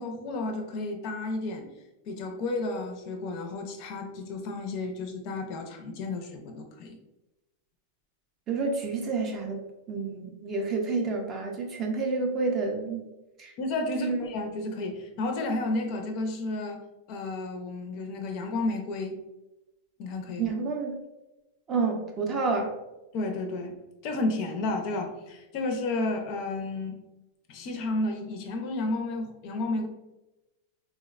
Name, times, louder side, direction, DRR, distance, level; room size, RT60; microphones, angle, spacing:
voice 1, 0.0-1.7 2.1-7.0 13.6-16.8 17.1-19.2 20.0-20.5 23.1-23.8 24.0-27.0 27.5-29.9, left 2 dB, 40° left, 4 dB, 0.4 m, -32 dB
voice 2, 8.5-13.0 13.4-13.5 13.9-14.3 20.4-21.0 21.7-22.7, right 4 dB, 25° right, 2 dB, 0.4 m, -29 dB
3.7 x 2.1 x 2.3 m, 1.0 s
supercardioid pair, 165°, 0 cm